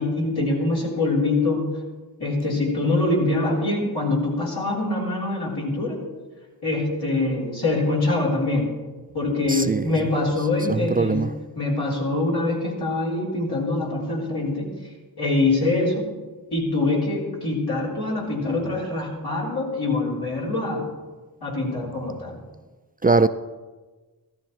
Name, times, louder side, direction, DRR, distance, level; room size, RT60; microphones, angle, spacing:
voice 1, 0.0-1.7 2.2-6.0 6.6-8.7 9.1-11.3 11.6-14.7 15.2-16.1 16.5-20.9 21.4-22.4, left 2 dB, 85° left, 3.8 m, -24 dB
voice 2, 9.5-9.8 10.7-11.3 23.0-23.3, right 3 dB, 25° right, 0.4 m, -20 dB
15.0 x 13.5 x 3.2 m
wide cardioid pair, 70°, 37 cm